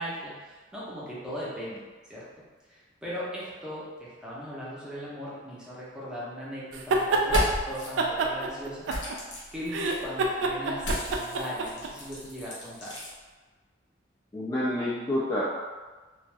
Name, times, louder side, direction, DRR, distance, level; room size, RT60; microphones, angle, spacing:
voice 1, 0.0-1.8 2.1-2.2 2.7-8.9 9.2-13.0, equal, 5° right, -8 dB, 0.7 m, -38 dB
sound 1, 6.7-7.5 8.0-9.4 9.7-11.9, right 3 dB, 90° right, 0.3 m, -26 dB
sound 2, 7.2-7.9 8.9-10.0 10.8-13.1, equal, 80° left, 0.9 m, -33 dB
voice 2, 14.3-15.4, left 1 dB, 20° left, -8 dB, 0.3 m, -28 dB
2.5 x 2.3 x 3.2 m, 1.3 s
head